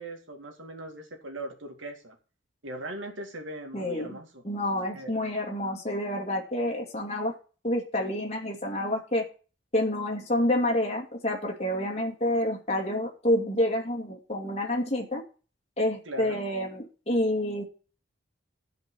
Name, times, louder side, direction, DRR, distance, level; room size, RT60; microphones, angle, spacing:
voice 1, 0.0-2.2 2.6-4.4 4.9-5.1 16.0-16.4, right 1 dB, 80° right, 4 dB, 2.4 m, -39 dB
voice 2, 3.7-4.2 4.4-7.3 7.6-9.2 9.7-15.2 15.8-17.6, left 1 dB, 35° left, 0 dB, 2.4 m, -28 dB
13.0 x 5.3 x 6.2 m, 0.36 s
head